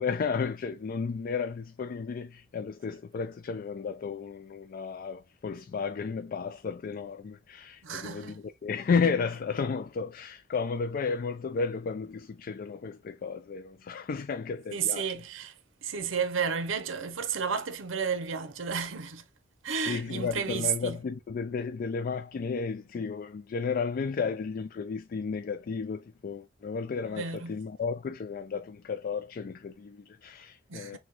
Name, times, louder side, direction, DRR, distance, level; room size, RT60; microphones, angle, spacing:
voice 1, 0.0-15.2 19.8-31.0, left 5 dB, 45° left, 0.3 m, -33 dB
voice 2, 7.8-8.4 14.7-15.5 15.8-19.2 19.6-21.0 27.0-27.6 30.7-31.0, right 6 dB, 80° right, 0.8 m, -32 dB
6.0 x 2.2 x 2.8 m
head